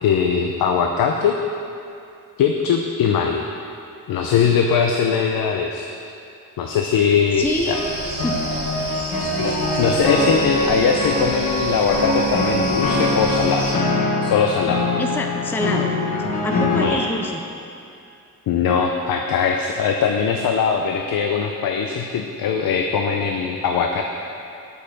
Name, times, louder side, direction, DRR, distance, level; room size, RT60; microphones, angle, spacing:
voice 1, 0.0-1.4 2.4-3.4 4.1-5.9 6.6-7.8 9.4-13.8 14.2-14.8 16.8-17.0 18.5-24.0, left 6 dB, 75° left, 3 dB, 0.6 m, -21 dB
voice 2, 7.3-7.8 8.2-8.3 14.9-15.9 16.4-17.4, left 2 dB, 5° left, 3 dB, 0.4 m, -26 dB
sound 1, 7.4-13.7, right 1 dB, 30° right, 1.9 m, -31 dB
sound 2, 7.7-16.9, left 2 dB, 55° left, 1.4 m, -23 dB
8.3 x 5.6 x 6.5 m, 2.5 s
wide cardioid pair, 160°, 35 cm